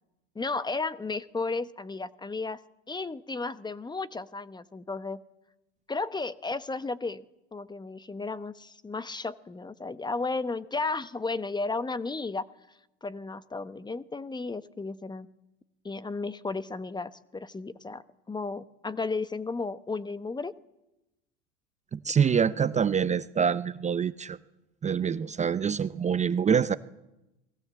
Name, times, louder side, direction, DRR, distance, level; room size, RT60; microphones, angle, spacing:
voice 1, 0.3-2.6 2.9-5.2 5.9-7.2 7.5-12.4 13.0-15.3 15.8-18.0 18.3-20.5, left 3 dB, 15° left, 14 dB, 1.1 m, -33 dB
voice 2, 21.9-24.4 24.8-26.8, right 7 dB, 20° right, 14 dB, 0.8 m, -25 dB
28.5 x 20.0 x 7.7 m, 0.96 s
hypercardioid pair, 85°, 33 cm